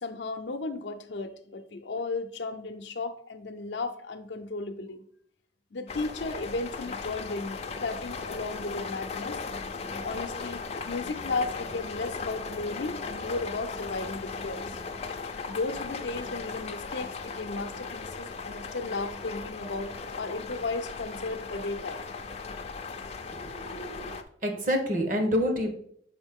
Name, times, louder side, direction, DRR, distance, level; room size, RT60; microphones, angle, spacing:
voice 1, 0.0-5.0 5.7-9.4 10.0-14.8 15.5-22.1, left 3 dB, 80° left, 8 dB, 0.6 m, -35 dB
sound 1, 5.9-24.2, left 4 dB, 40° left, 0.5 m, -37 dB
voice 2, 23.3-24.1 24.4-25.7, equal, 50° right, 5 dB, 1.1 m, -28 dB
6.2 x 4.4 x 3.6 m, 0.65 s
head